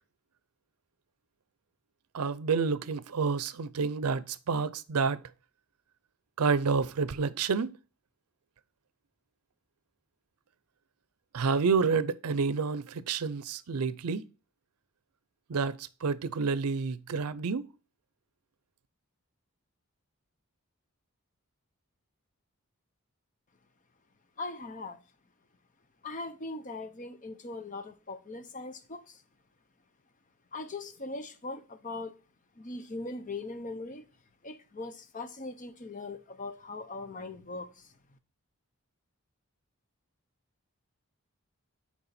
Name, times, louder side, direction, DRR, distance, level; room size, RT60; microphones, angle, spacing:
voice 1, 2.1-5.2 6.4-7.8 11.3-14.2 15.5-17.7, right 5 dB, 85° right, 0.5 m, -29 dB
voice 2, 24.4-25.0 26.0-29.2 30.5-32.2 32.6-34.0 34.4-37.9, left 3 dB, 35° left, 0.6 m, -40 dB
6.8 x 4.8 x 4.1 m
head